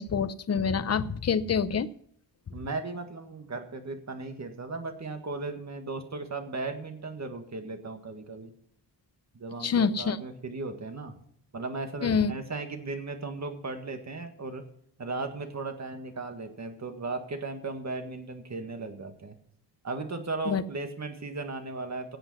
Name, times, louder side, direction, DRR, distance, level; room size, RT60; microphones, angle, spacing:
voice 1, 0.0-1.9 9.6-10.2 12.0-12.3 20.5-20.6, left 6 dB, 35° left, 13 dB, 0.7 m, -26 dB
voice 2, 2.5-8.5 9.3-11.2 11.5-14.6 15.0-19.4 19.8-22.2, right 3 dB, 40° right, 6 dB, 1.8 m, -36 dB
17.0 x 7.9 x 5.6 m, 0.67 s
wide cardioid pair, 140°, 43 cm